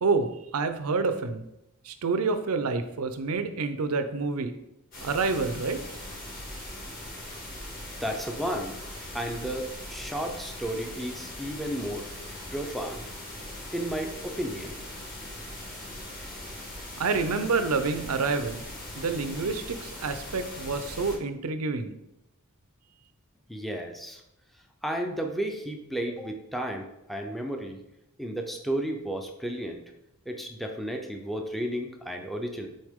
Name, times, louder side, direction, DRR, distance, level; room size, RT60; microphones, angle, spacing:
voice 1, 0.0-1.4 1.9-4.6 5.0-5.8 16.9-18.6 19.0-22.0, right 4 dB, 85° right, 9 dB, 0.6 m, -28 dB
sound 1, 4.9-21.2, left 1 dB, 40° left, 2.3 m, -40 dB
voice 2, 8.0-8.8 9.1-12.1 12.5-13.1 13.7-14.8 23.5-24.2 24.8-27.8 28.2-29.8 30.3-32.7, right 1 dB, ahead, 3 dB, 0.6 m, -33 dB
6.3 x 4.3 x 3.6 m, 0.85 s
head